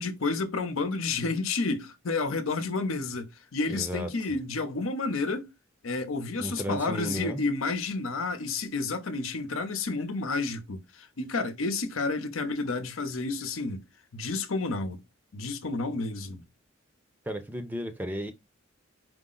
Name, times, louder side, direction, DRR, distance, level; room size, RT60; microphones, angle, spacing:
voice 1, 0.0-5.5 5.8-13.8 14.1-15.0 15.3-16.4, left 3 dB, 80° left, 0.8 m, -30 dB
voice 2, 3.7-4.1 6.4-7.4 17.3-18.3, equal, 10° right, 0.5 m, -34 dB
4.8 x 2.0 x 3.8 m
head